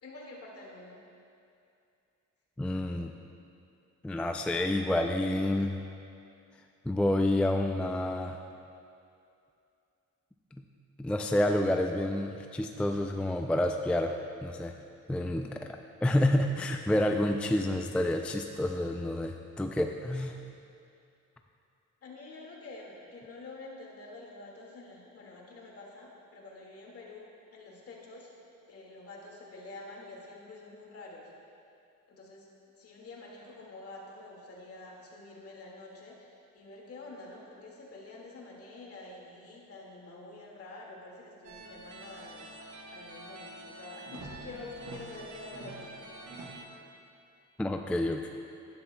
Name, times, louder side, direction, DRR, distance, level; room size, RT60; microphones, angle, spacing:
voice 1, 0.0-1.0 22.0-28.3 28.7-31.3 32.1-32.5 32.8-42.6 42.9-46.1, left 2 dB, 50° left, -2 dB, 2.0 m, -47 dB
voice 2, 2.6-3.1 4.0-5.8 6.9-8.4 11.0-14.7 15.1-15.6 16.0-20.3 47.6-48.3, left 1 dB, 5° left, 4 dB, 0.3 m, -29 dB
sound 1, 41.4-46.7, right 2 dB, 75° right, 1.3 m, -46 dB
11.5 x 11.5 x 2.2 m, 2.5 s
cardioid pair, 90°, 30 cm